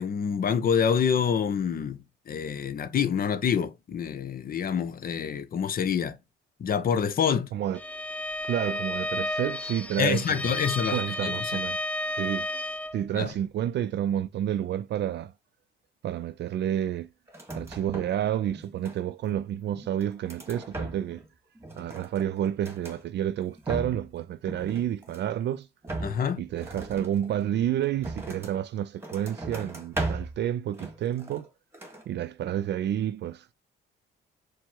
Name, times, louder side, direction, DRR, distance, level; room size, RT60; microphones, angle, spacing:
voice 1, 0.0-2.0 2.3-6.2 6.6-7.5 10.0-11.6 13.1-13.3 26.0-26.4, left 7 dB, 45° left, 0.7 m, -27 dB
Bowed string instrument, 7.7-13.0, left 1 dB, 5° left, 0.3 m, -32 dB
voice 2, 8.4-10.6 10.9-11.8 12.2-12.5 12.9-15.3 16.0-17.1 17.5-21.2 21.8-25.7 26.4-31.5 32.1-33.5, right 10 dB, 60° right, 0.4 m, -30 dB
sound 1, 17.3-18.2 18.5-19.3 19.8-21.3 21.5-23.0 23.4-24.1 24.4-25.4 25.8-28.6 29.0-30.4 30.7-31.5 31.7-32.1, right 2 dB, 10° right, 1.4 m, -38 dB
4.5 x 2.1 x 4.4 m
cardioid pair, 90°, 20 cm